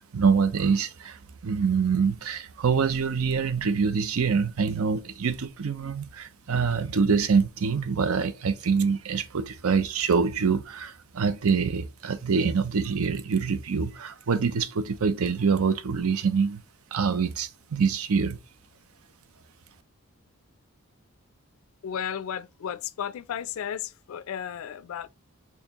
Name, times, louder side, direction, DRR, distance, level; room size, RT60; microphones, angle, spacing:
voice 1, 0.0-16.6 16.9-18.4, right 5 dB, 75° right, 0.5 m, -25 dB
voice 2, 21.8-25.1, left 8 dB, 70° left, 0.3 m, -34 dB
4.3 x 2.9 x 2.8 m
head